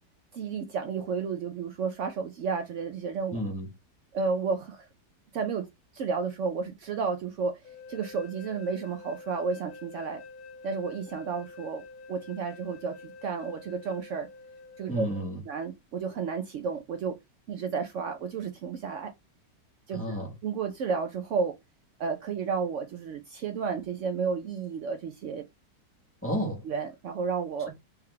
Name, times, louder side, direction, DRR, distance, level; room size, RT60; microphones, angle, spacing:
voice 1, 0.3-3.4 4.1-4.9 5.3-5.7 5.9-7.6 7.9-10.2 10.6-11.8 12.1-14.3 14.8-15.1 15.5-17.2 17.5-19.1 19.9-20.2 20.4-21.6 22.0-25.4 26.6-27.7, right 5 dB, 85° right, 0.6 m, -32 dB
voice 2, 3.3-3.7 14.9-15.4 19.9-20.3 26.2-26.6, equal, 10° left, 1.3 m, -31 dB
sound 1, 7.6-15.2, left 4 dB, 60° left, 1.5 m, -47 dB
3.5 x 3.4 x 3.3 m
omnidirectional pair, 1.9 m